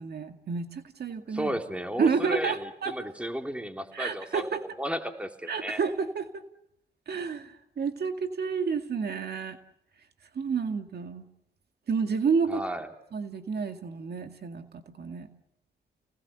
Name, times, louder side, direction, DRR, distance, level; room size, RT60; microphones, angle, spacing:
voice 1, 0.0-1.5 2.0-2.9 3.9-4.6 5.5-6.4 7.1-9.6 10.4-11.3 11.9-12.6 13.1-15.3, right 5 dB, 60° right, 6 dB, 2.0 m, -30 dB
voice 2, 1.3-4.5 4.8-5.8 12.5-12.9, equal, 5° right, 4 dB, 3.5 m, -33 dB
29.5 x 19.5 x 6.8 m, 0.78 s
cardioid pair, 60°, 19 cm